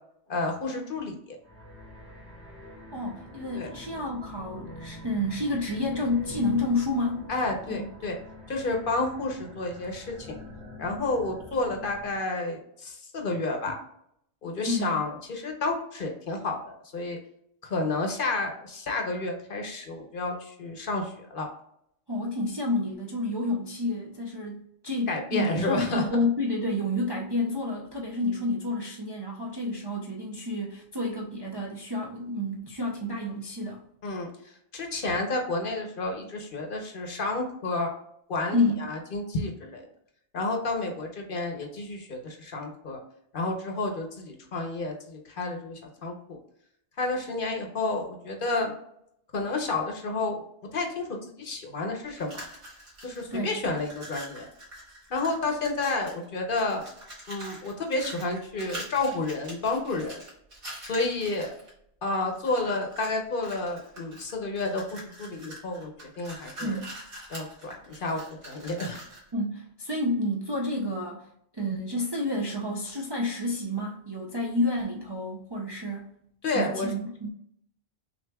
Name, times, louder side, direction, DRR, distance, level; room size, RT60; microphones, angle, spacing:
voice 1, 0.3-1.4 3.5-3.7 7.3-8.2 8.5-10.4 10.8-13.7 14.4-17.2 17.6-21.5 25.1-26.0 34.0-34.3 34.7-37.9 38.3-39.9 40.3-43.0 43.3-46.4 47.0-48.7 49.3-50.4 50.7-52.4 53.0-54.5 55.1-56.8 57.3-60.2 60.9-61.5 62.0-66.8 67.3-69.0 76.4-76.9, left 2 dB, 55° left, 3 dB, 0.9 m, -30 dB
sound 1, 1.4-12.2, left 2 dB, 10° right, 1.3 m, -45 dB
voice 2, 2.9-7.3 7.7-7.8 14.7-15.0 22.1-33.8 38.5-38.8 53.3-53.6 66.6-66.8 69.3-71.3 71.5-76.1 76.5-77.3, left 1 dB, 35° right, -2 dB, 0.4 m, -29 dB
sound 2, 52.1-53.4 53.7-56.2 56.6-61.7 62.3-63.1 63.4-69.3, right 1 dB, 55° right, 1.8 m, -44 dB
6.1 x 2.6 x 2.3 m, 0.72 s
omnidirectional pair, 1.1 m